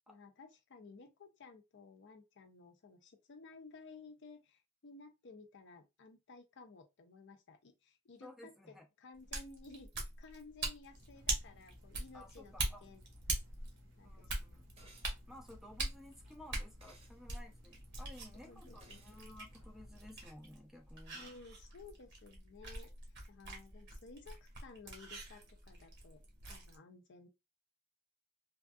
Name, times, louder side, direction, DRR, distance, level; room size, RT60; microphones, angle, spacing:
voice 1, 0.1-12.5 12.8-13.0 14.0-14.3 18.4-19.1 21.2-22.9 23.3-26.2 26.5-27.3, left 3 dB, 55° left, 0.5 m, -56 dB
voice 2, 8.2-8.9 12.1-12.8 14.0-14.7 15.3-21.3, left 1 dB, ahead, 0.5 m, -55 dB
sound 1, 9.1-26.8, right 2 dB, 50° right, 1.0 m, -44 dB
sound 2, 10.9-20.3, left 1 dB, 80° right, 1.9 m, -61 dB
sound 3, 14.8-15.1 16.8-17.2 18.8-19.2, right 2 dB, 30° right, 0.9 m, -61 dB
3.3 x 2.5 x 2.2 m
head